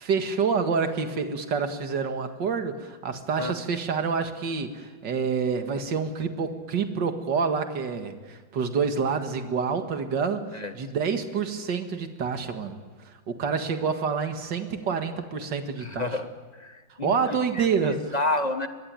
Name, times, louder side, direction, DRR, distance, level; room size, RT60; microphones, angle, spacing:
voice 1, 0.0-12.8 13.3-16.1 17.0-18.1, right 5 dB, 65° right, 6 dB, 2.4 m, -27 dB
voice 2, 15.8-16.3 16.6-18.7, left 2 dB, 25° left, 8 dB, 1.2 m, -30 dB
24.0 x 21.0 x 9.0 m, 1.5 s
omnidirectional pair, 2.1 m